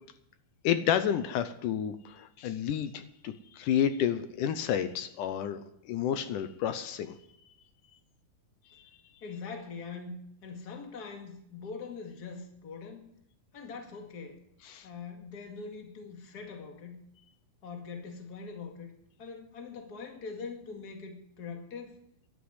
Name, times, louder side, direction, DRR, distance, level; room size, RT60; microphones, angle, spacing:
voice 1, 0.6-7.2 8.7-8.8 14.7-14.9, left 9 dB, 75° left, 10 dB, 2.2 m, -30 dB
voice 2, 9.2-13.1 13.5-14.4 14.8-17.0 17.6-18.9 19.2-22.0, left 5 dB, 35° left, 3 dB, 2.1 m, -42 dB
11.5 x 9.2 x 9.6 m, 0.74 s
omnidirectional pair, 4.1 m